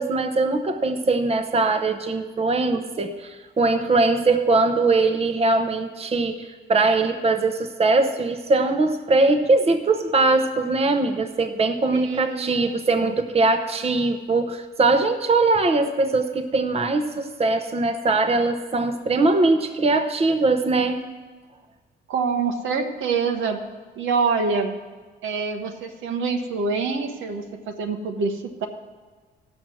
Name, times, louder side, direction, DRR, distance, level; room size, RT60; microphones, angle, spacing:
voice 1, 0.0-21.0, right 3 dB, 30° right, 7 dB, 0.9 m, -21 dB
voice 2, 11.9-13.1 22.1-23.6 24.0-24.7 25.2-28.7, right 4 dB, 80° right, 4 dB, 1.1 m, -26 dB
16.0 x 6.3 x 6.2 m, 1.4 s
cardioid pair, 90°, 20 cm